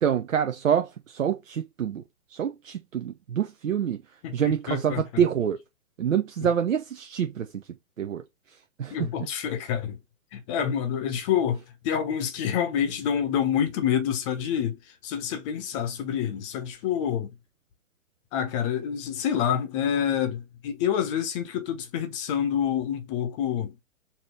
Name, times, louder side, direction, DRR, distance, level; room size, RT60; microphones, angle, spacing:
voice 1, 0.0-2.0 2.3-4.0 4.3-5.6 6.0-7.6 8.0-8.2 8.8-9.0, right 8 dB, 65° right, 0.7 m, -26 dB
voice 2, 4.2-5.0 6.4-6.5 8.9-10.0 10.3-17.3 18.3-23.8, left 9 dB, 25° left, 0.8 m, -27 dB
5.1 x 2.8 x 3.3 m
figure-of-eight pair, 120°, 41 cm